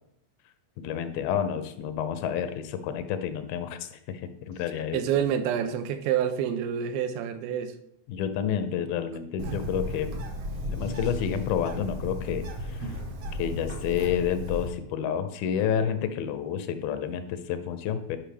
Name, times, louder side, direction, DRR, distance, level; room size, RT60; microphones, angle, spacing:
voice 1, 0.8-5.2 8.1-10.2 10.7-12.9 13.4-18.2, left 8 dB, 85° left, 10 dB, 2.4 m, -30 dB
voice 2, 4.9-7.7 9.4-9.6, right 9 dB, 85° right, 9 dB, 2.4 m, -28 dB
Bird, 9.4-14.7, equal, 65° right, 1.5 m, -35 dB
8.9 x 5.3 x 3.3 m, 0.75 s
omnidirectional pair, 4.3 m